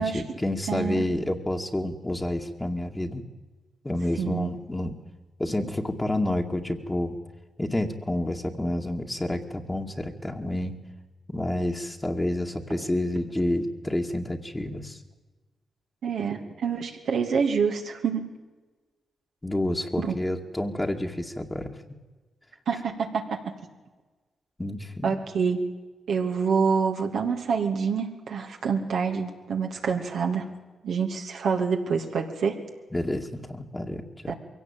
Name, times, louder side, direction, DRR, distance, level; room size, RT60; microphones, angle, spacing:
voice 1, 0.0-3.2 3.8-5.0 5.4-7.2 7.6-10.8 11.3-15.0 19.4-21.8 24.6-25.1 32.9-34.3, left 1 dB, 15° left, 1 dB, 2.3 m, -29 dB
voice 2, 0.7-1.0 4.2-4.5 12.7-12.8 16.0-18.2 20.0-20.2 22.7-23.4 25.0-25.6 26.1-30.5 30.8-32.6 34.3-34.4, right 6 dB, 75° right, 1 dB, 2.8 m, -27 dB
22.5 x 17.0 x 9.2 m, 1.3 s
supercardioid pair, 50°, 0 cm